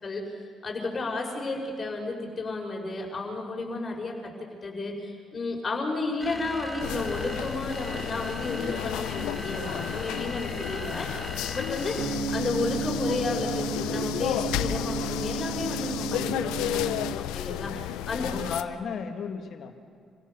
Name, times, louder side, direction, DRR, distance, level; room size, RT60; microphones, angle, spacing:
voice 1, 0.6-4.3 4.6-11.2 11.5-18.3, left 3 dB, 35° left, 0 dB, 5.8 m, -32 dB
sound 1, 6.2-12.4, equal, 5° left, 1.3 m, -39 dB
sound 2, 6.8-18.6, left 14 dB, 85° left, 0.6 m, -33 dB
sound 3, 12.0-17.2, right 6 dB, 50° right, 1.7 m, -33 dB
voice 2, 18.2-19.7, left 6 dB, 65° left, 6 dB, 2.2 m, -34 dB
27.0 x 16.5 x 7.0 m, 2.3 s
supercardioid pair, 70°, 0 cm